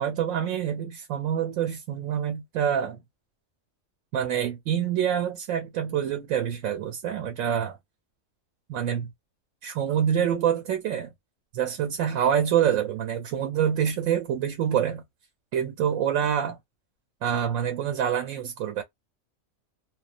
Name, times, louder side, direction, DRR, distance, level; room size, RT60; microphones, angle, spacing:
voice 1, 0.0-3.0 4.1-7.8 8.7-9.1 9.6-11.1 11.5-15.0 15.5-16.6 17.2-18.8, right 9 dB, 80° right, 1.0 m, -26 dB
2.3 x 2.2 x 2.3 m
omnidirectional pair, 1.4 m